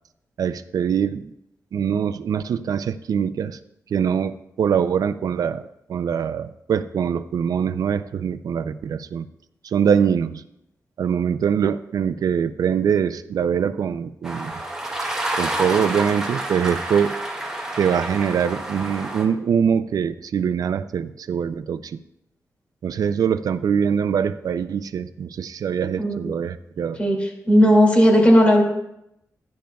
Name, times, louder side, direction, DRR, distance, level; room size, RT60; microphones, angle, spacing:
voice 1, 0.4-1.3 1.7-3.6 3.9-9.3 9.6-10.4 11.0-14.5 15.0-15.1 15.4-17.2 17.8-22.0 22.8-27.0, right 7 dB, 75° right, 11 dB, 0.4 m, -23 dB
sound 1, 14.2-19.2, right 1 dB, 10° right, 1.8 m, -29 dB
voice 2, 27.0-28.6, equal, 20° left, 0 dB, 2.3 m, -15 dB
15.5 x 10.5 x 2.3 m, 0.81 s
wide cardioid pair, 165°, 6 cm